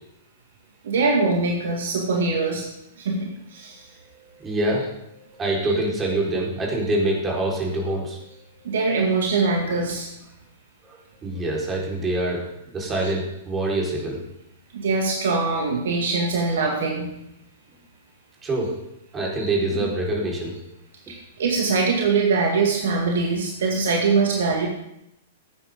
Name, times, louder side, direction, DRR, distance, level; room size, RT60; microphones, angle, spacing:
voice 1, 0.8-2.7 3.0-3.8 5.6-5.7 8.6-10.1 13.0-13.1 14.7-17.1 19.4-19.5 21.1-24.7, right 4 dB, 60° right, 1 dB, 2.1 m, -23 dB
voice 2, 4.3-8.7 10.8-12.5 12.7-14.2 18.4-18.7 19.1-20.5, right 1 dB, 20° right, -3 dB, 4.2 m, -25 dB
16.5 x 9.0 x 3.7 m, 0.82 s
figure-of-eight pair, 105°, 0 cm